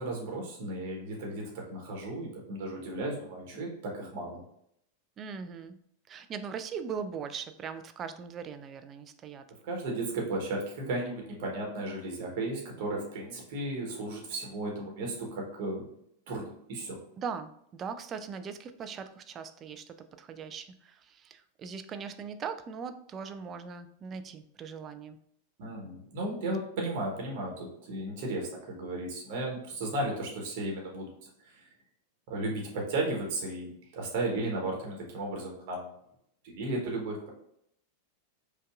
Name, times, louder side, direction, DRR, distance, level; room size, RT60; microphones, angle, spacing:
voice 1, 0.0-4.4 9.6-15.8 16.3-17.0 25.6-31.1 32.3-35.9 36.4-37.3, right 2 dB, 50° right, -1 dB, 1.0 m, -34 dB
voice 2, 5.2-5.8 6.1-9.5 17.2-25.2, right 6 dB, 25° right, 9 dB, 0.3 m, -40 dB
5.1 x 2.3 x 2.4 m, 0.72 s
figure-of-eight pair, 90°, 0 cm